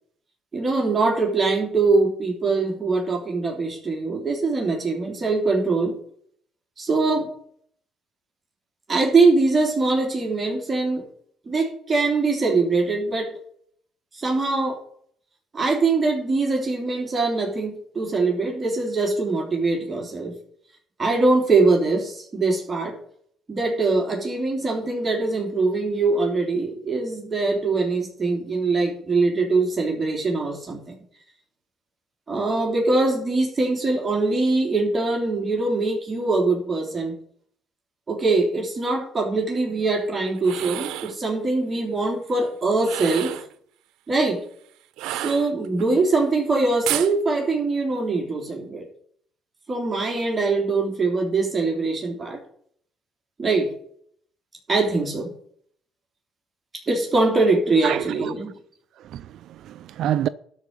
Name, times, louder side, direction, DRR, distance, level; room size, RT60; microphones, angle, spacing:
voice 1, 0.5-6.0 6.8-7.3 8.9-11.0 11.5-13.3 14.1-14.8 15.5-20.3 21.0-23.0 23.5-31.0 32.3-37.2 38.1-43.3 44.1-44.4 45.1-48.9 49.7-52.4 53.4-53.7 54.7-55.3 56.9-58.5, right 3 dB, 25° right, 3.1 m, -22 dB
sound 1, 40.4-41.2 42.8-43.5 45.0-45.9 46.9-47.1, right 14 dB, 90° right, 0.8 m, -30 dB
voice 2, 57.8-58.3 59.0-60.3, right 11 dB, 70° right, 0.4 m, -27 dB
13.0 x 4.7 x 8.5 m
cardioid pair, 100°, 0 cm